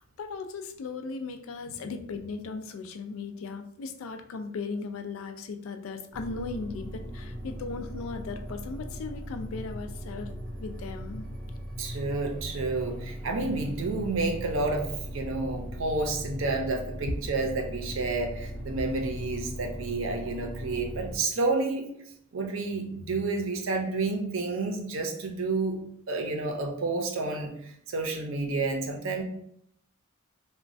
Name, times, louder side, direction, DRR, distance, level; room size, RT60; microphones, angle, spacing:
voice 1, 0.2-10.3 10.6-11.2, left 4 dB, 70° left, 6 dB, 0.3 m, -37 dB
sound 1, 6.1-21.2, equal, 5° left, 0.4 m, -39 dB
voice 2, 11.8-21.9 22.3-25.8 26.1-29.2, right 3 dB, 65° right, 3 dB, 0.5 m, -30 dB
3.0 x 2.1 x 2.6 m, 0.69 s
head